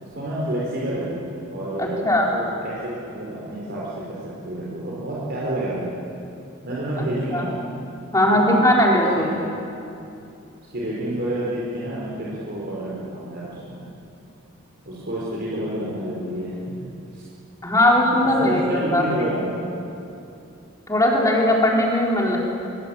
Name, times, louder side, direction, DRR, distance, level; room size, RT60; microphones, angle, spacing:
voice 1, 0.0-5.9 6.6-7.5 8.3-8.7 8.9-9.5 10.7-13.8 14.9-16.7 17.1-17.2 18.2-19.6, right 1 dB, 50° right, -7 dB, 5.1 m, -29 dB
voice 2, 1.8-2.3 7.0-7.1 7.3-7.5 8.1-9.3 17.6-19.1 20.9-22.4, left 1 dB, 15° left, -2 dB, 4.6 m, -19 dB
24.0 x 22.5 x 8.7 m, 2.7 s
head